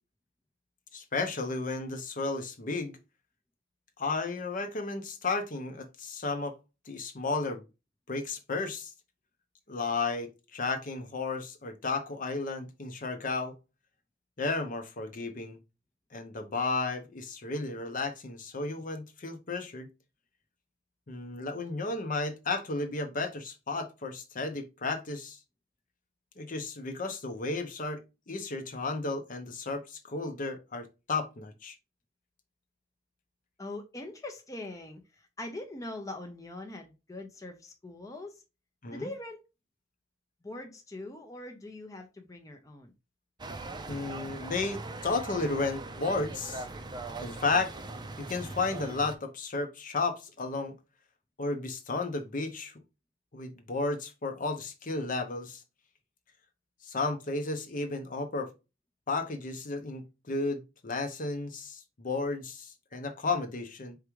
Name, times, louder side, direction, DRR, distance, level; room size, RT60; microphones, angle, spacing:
voice 1, 0.9-3.0 4.0-6.6 6.9-7.6 8.1-8.9 9.7-13.6 14.4-15.6 16.1-19.9 21.1-25.4 26.4-28.0 28.3-31.7 38.8-39.1 43.9-46.6 47.2-47.7 48.2-50.7 51.4-52.8 53.3-55.6 56.8-58.5 59.1-64.0, left 3 dB, 45° left, 0.8 m, -33 dB
voice 2, 33.6-38.4 38.9-39.4 40.4-42.9, left 2 dB, 20° left, 0.6 m, -42 dB
sound 1, 43.4-49.1, right 3 dB, 25° right, 0.5 m, -40 dB
4.7 x 3.5 x 3.0 m
head